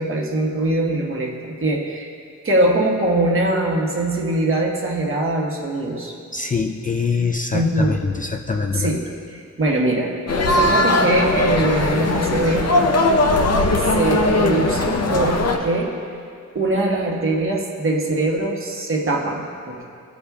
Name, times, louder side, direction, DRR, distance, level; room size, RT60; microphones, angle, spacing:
voice 1, 0.0-2.1 2.4-6.1 7.5-8.0 8.7-9.1 9.6-10.1 10.5-12.7 13.9-15.9 16.5-19.8, right 2 dB, 45° right, -1 dB, 1.2 m, -22 dB
voice 2, 6.3-8.9, left 4 dB, 25° left, 3 dB, 0.4 m, -23 dB
sound 1, 10.3-15.6, left 2 dB, 55° left, 0.7 m, -19 dB
15.5 x 5.1 x 2.3 m, 2.4 s
cardioid pair, 65°, 31 cm